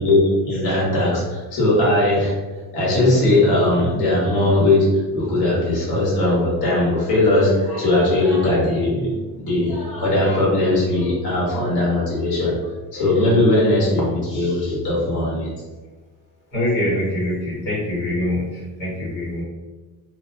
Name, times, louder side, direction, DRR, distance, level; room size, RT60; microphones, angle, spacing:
voice 1, 0.0-2.3 2.7-9.1 9.4-12.5 12.9-15.5, left 2 dB, 65° left, -6 dB, 1.4 m, -19 dB
voice 2, 16.5-19.4, left 1 dB, 80° left, -9 dB, 1.4 m, -24 dB
2.6 x 2.1 x 2.6 m, 1.2 s
cardioid pair, 115°, 41 cm